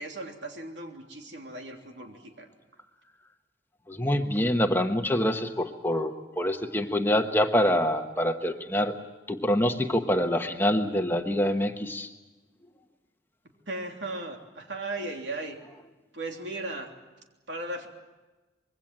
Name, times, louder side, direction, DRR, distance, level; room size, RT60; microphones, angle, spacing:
voice 1, 0.0-2.5 13.7-15.6 16.1-16.9 17.5-17.9, right 2 dB, 80° right, 2 dB, 3.2 m, -36 dB
voice 2, 3.9-8.9 9.3-12.1, left 1 dB, 10° left, 5 dB, 1.2 m, -25 dB
25.5 x 22.0 x 7.6 m, 1.2 s
head